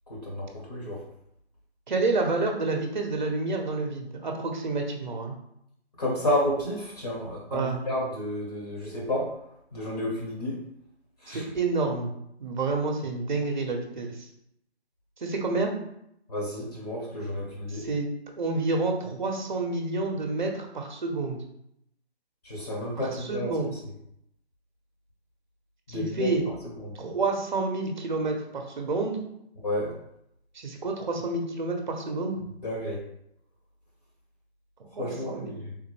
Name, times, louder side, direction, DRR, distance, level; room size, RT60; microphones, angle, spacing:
voice 1, 0.1-1.0 6.0-9.3 9.7-10.6 11.2-11.4 16.3-17.8 22.4-23.5 25.9-26.3 26.8-26.9 29.6-29.9 32.6-33.0 35.0-35.7, left 1 dB, 35° left, -4 dB, 0.8 m, -31 dB
voice 2, 1.9-5.4 7.5-7.8 11.3-12.1 12.4-14.3 15.2-15.7 17.7-18.1 18.4-21.4 23.0-23.7 25.9-26.4 27.0-29.2 30.5-32.4 34.8-35.5, right 3 dB, 45° right, 3 dB, 0.6 m, -29 dB
3.6 x 2.0 x 3.0 m, 0.77 s
hypercardioid pair, 165°, 33 cm